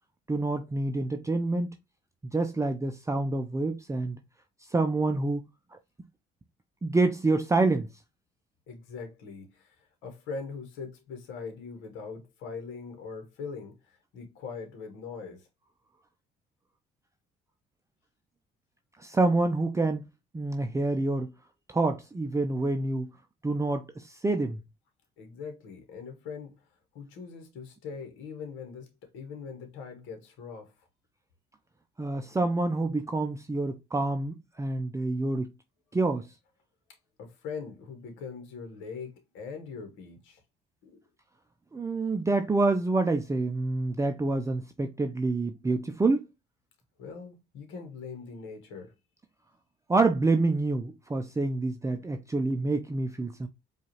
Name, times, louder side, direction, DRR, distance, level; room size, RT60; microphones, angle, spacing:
voice 1, 0.3-1.7 2.3-4.2 4.7-5.4 5.7-5.8 6.8-7.9 19.0-20.1 20.3-21.3 21.7-23.1 23.4-24.6 32.0-35.5 35.9-36.3 41.7-46.3 49.9-53.5, right 2 dB, 15° right, 0.5 m, -27 dB
voice 2, 8.7-15.5 25.2-26.7 26.9-30.7 37.2-40.4 40.8-41.0 47.0-48.9, left 5 dB, 75° left, 1.1 m, -41 dB
4.7 x 2.4 x 2.9 m
hypercardioid pair, 60°, 20 cm